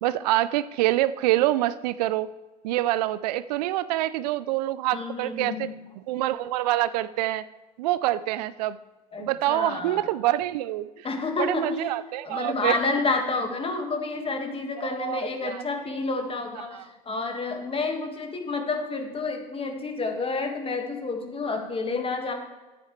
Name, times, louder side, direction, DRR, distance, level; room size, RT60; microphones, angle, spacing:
voice 1, 0.0-2.3 2.6-5.7 6.1-7.4 7.8-8.8 9.2-11.1 11.4-12.8 14.8-15.6 16.7-16.8, right 15 dB, 75° right, 16 dB, 0.4 m, -26 dB
voice 2, 4.9-5.8 9.1-10.1 11.0-11.9 12.2-22.3, left 3 dB, 25° left, 4 dB, 1.7 m, -29 dB
11.5 x 9.0 x 3.2 m, 1.2 s
hypercardioid pair, 80°, 21 cm